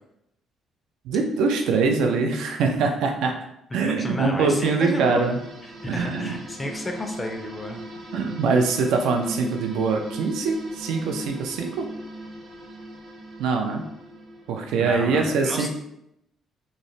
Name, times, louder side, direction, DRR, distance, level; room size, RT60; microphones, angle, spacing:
voice 1, 1.0-3.4 3.7-5.4 5.9-6.4 8.1-11.9 13.4-13.8 14.5-15.7, right 4 dB, 85° right, 3 dB, 0.4 m, -23 dB
voice 2, 3.7-5.3 5.8-7.8 14.8-15.7, left 1 dB, 15° left, 3 dB, 0.4 m, -31 dB
sound 1, 4.4-14.8, right 1 dB, 50° right, 0.7 m, -39 dB
3.0 x 2.0 x 2.6 m, 0.79 s
cardioid pair, 135°, 0 cm